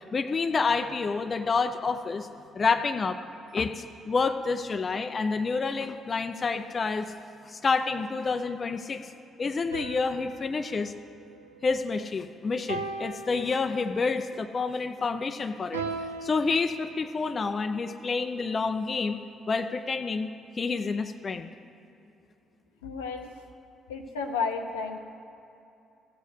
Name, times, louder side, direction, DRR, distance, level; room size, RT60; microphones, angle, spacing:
voice 1, 0.1-2.3 2.5-3.2 3.5-7.1 7.4-9.0 9.4-10.9 11.6-15.8 16.2-19.2 19.5-20.3 20.5-21.5, left 4 dB, 40° left, 8 dB, 0.6 m, -28 dB
sound 1, 9.7-12.1 12.7-14.2 15.7-17.4, right 4 dB, 85° right, 0.7 m, -39 dB
voice 2, 22.8-23.3 23.9-25.0, left 5 dB, 80° left, 3 dB, 0.8 m, -32 dB
14.5 x 8.1 x 6.5 m, 2.8 s
figure-of-eight pair, 45°, 0 cm